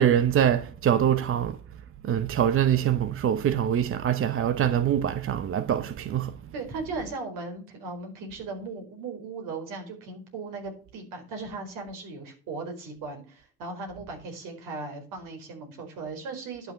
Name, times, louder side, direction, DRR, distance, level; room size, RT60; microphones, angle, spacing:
voice 1, 0.0-1.6 2.0-6.4, right 9 dB, 40° right, 0.8 m, -24 dB
voice 2, 6.5-16.7, right 3 dB, 70° right, 4.8 m, -37 dB
11.5 x 6.6 x 7.0 m
supercardioid pair, 90°, 34 cm